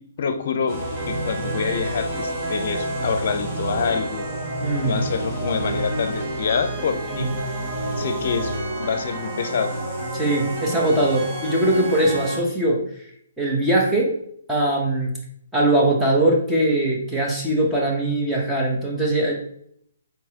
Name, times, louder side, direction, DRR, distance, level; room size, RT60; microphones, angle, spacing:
voice 1, 0.2-4.3 4.8-7.3 8.0-9.8, left 6 dB, 55° left, 9 dB, 0.6 m, -26 dB
sound 1, 0.7-12.4, right 1 dB, 40° right, 1.5 m, -29 dB
voice 2, 4.6-5.0 7.1-7.3 10.1-12.8 13.4-14.1 14.5-15.1 15.5-19.4, right 1 dB, 5° right, -4 dB, 1.0 m, -21 dB
4.5 x 3.9 x 2.9 m, 0.67 s
hypercardioid pair, 145°, 0 cm